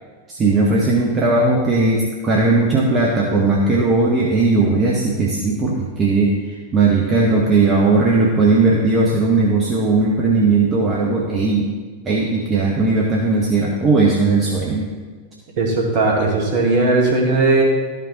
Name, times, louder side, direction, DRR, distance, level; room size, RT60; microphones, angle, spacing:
voice 1, 0.3-11.7 12.0-14.9, right 3 dB, 25° right, -3 dB, 1.1 m, -17 dB
voice 2, 15.6-17.6, right 3 dB, 45° right, -1 dB, 2.1 m, -17 dB
12.5 x 5.4 x 4.1 m, 1.5 s
figure-of-eight pair, 90°, 0 cm